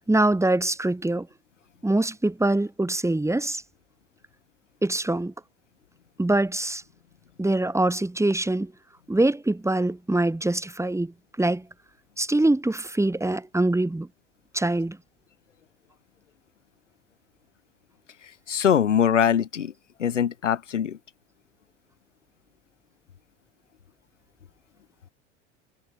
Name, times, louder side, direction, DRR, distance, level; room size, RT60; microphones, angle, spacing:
voice 1, 0.1-1.3 1.8-3.6 4.8-5.3 6.2-6.8 7.4-8.7 9.1-11.7 12.2-14.1 14.5-15.0, right 2 dB, 10° right, 5.2 m, -24 dB
voice 2, 18.5-19.7 20.0-21.0, left 8 dB, 85° left, 2.5 m, -22 dB
hypercardioid pair, 75°, 36 cm